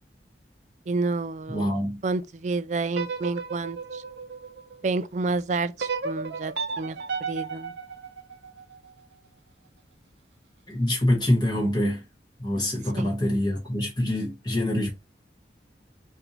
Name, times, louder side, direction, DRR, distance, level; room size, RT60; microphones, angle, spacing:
voice 1, 0.9-1.7 2.0-4.0 4.8-7.0 7.3-7.7 12.9-13.1, right 3 dB, 40° right, 0.4 m, -29 dB
voice 2, 1.5-2.0 10.7-12.0 12.4-14.9, left 1 dB, 25° left, 1.0 m, -25 dB
sound 1, 2.9-5.1 5.8-8.9, right 5 dB, 75° right, 0.8 m, -34 dB
4.3 x 2.6 x 4.0 m
head